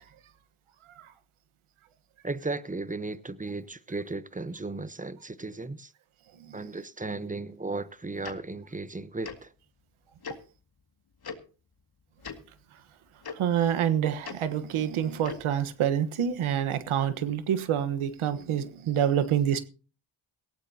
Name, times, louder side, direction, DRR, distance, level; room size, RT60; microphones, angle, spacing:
voice 1, 2.2-5.9 6.5-9.5, right 3 dB, 15° right, 0.9 m, -35 dB
Tick-tock, 8.2-8.4 9.2-9.4 10.2-10.4 11.2-11.4 12.2-12.4 13.2-13.3 14.2-14.4 15.2-15.4, left 5 dB, 50° left, 2.2 m, -38 dB
voice 2, 13.3-19.7, right 9 dB, 85° right, 1.3 m, -27 dB
18.0 x 16.0 x 2.8 m
cardioid pair, 65°, 48 cm